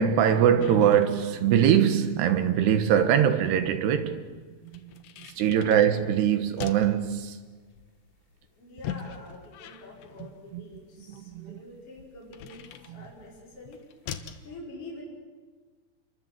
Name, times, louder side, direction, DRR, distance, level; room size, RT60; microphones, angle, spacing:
voice 1, 0.0-4.9 5.2-7.4 10.5-10.6 11.1-11.6 12.9-13.0, right 9 dB, 80° right, 3.5 m, -23 dB
sound 1, 0.6-14.5, left 9 dB, 85° left, 3.4 m, -44 dB
voice 2, 5.4-5.8 8.5-13.8 14.4-15.0, left 1 dB, 35° left, 6.4 m, -46 dB
28.5 x 23.0 x 7.8 m
omnidirectional pair, 4.8 m